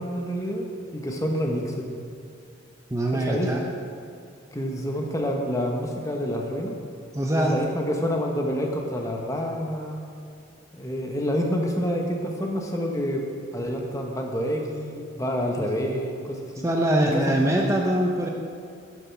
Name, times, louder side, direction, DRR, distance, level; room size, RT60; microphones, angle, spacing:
voice 1, 0.0-1.9 3.1-3.6 4.5-6.8 7.3-10.0 10.7-16.6 17.0-17.4, equal, 15° left, 1 dB, 1.0 m, -28 dB
voice 2, 2.9-3.6 7.1-7.5 15.6-15.7 16.6-18.3, right 1 dB, 15° right, 0 dB, 0.6 m, -23 dB
11.0 x 7.2 x 5.9 m, 2.4 s
head